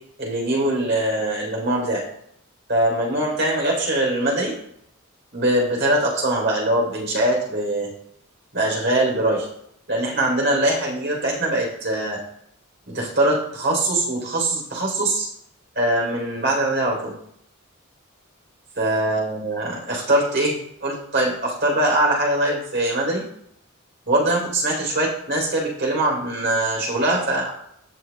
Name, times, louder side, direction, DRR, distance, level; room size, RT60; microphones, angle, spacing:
voice 1, 0.2-2.0 2.7-4.5 5.3-7.9 8.5-9.5 9.9-12.2 12.9-15.3 15.8-17.1 18.8-20.5 20.8-23.2 24.1-27.5, right 1 dB, 55° right, -2 dB, 3.8 m, -22 dB
17.5 x 6.1 x 2.3 m, 0.71 s
head